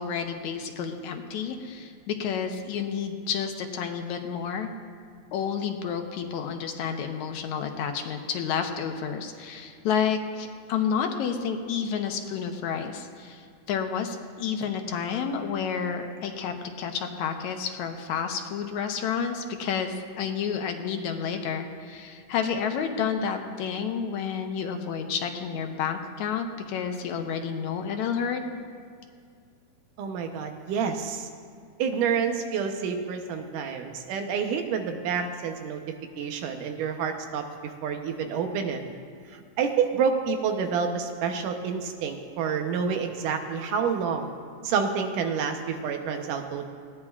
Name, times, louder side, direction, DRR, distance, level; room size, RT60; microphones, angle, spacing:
voice 1, 0.0-4.7 5.3-28.4, left 7 dB, 75° left, 5 dB, 2.0 m, -30 dB
voice 2, 30.0-31.3 31.8-35.8 36.2-38.8 39.6-44.3 44.6-46.7, right 6 dB, 90° right, 5 dB, 2.5 m, -28 dB
19.5 x 16.0 x 2.4 m, 2.2 s
omnidirectional pair, 3.6 m